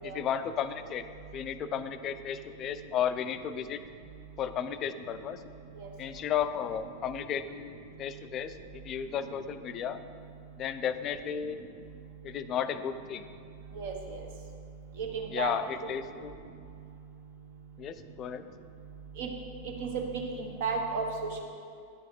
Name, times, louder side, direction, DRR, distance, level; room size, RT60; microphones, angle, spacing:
voice 1, 0.0-1.0 1.3-3.8 4.4-5.4 6.0-7.7 8.0-10.0 10.6-11.6 12.2-13.2 15.3-16.4 17.8-18.4, left 8 dB, 30° left, 11 dB, 0.4 m, -33 dB
voice 2, 13.8-14.2 15.0-15.5 19.2-19.3 19.8-20.0 20.4-21.4, right 5 dB, 55° right, 1 dB, 1.2 m, -33 dB
9.9 x 4.8 x 5.0 m, 2.3 s
figure-of-eight pair, 90°, 0 cm